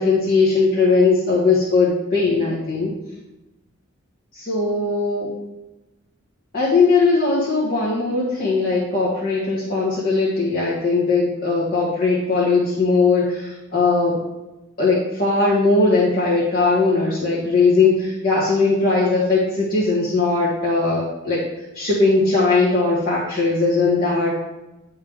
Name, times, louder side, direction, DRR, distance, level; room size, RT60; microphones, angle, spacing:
voice 1, 0.0-2.9 4.3-5.3 6.5-14.2 14.8-24.4, left 3 dB, 45° left, -8 dB, 1.6 m, -19 dB
10.5 x 3.6 x 3.5 m, 0.99 s
head